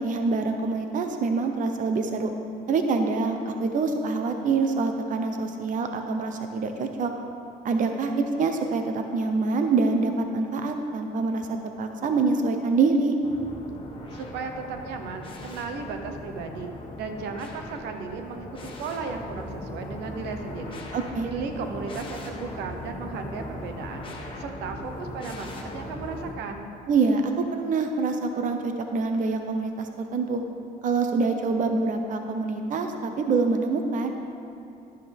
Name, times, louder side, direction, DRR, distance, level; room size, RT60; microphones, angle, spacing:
voice 1, 0.0-2.3 2.7-7.1 7.6-13.2 20.9-21.3 26.9-30.4 30.8-34.1, right 4 dB, 50° right, 5 dB, 0.9 m, -25 dB
sound 1, 13.2-26.3, left 1 dB, 30° left, 1.7 m, -39 dB
voice 2, 14.1-20.8 21.2-24.1 24.4-26.7, right 4 dB, 85° right, 5 dB, 1.0 m, -35 dB
12.0 x 11.5 x 3.6 m, 2.5 s
cardioid pair, 110°, 17 cm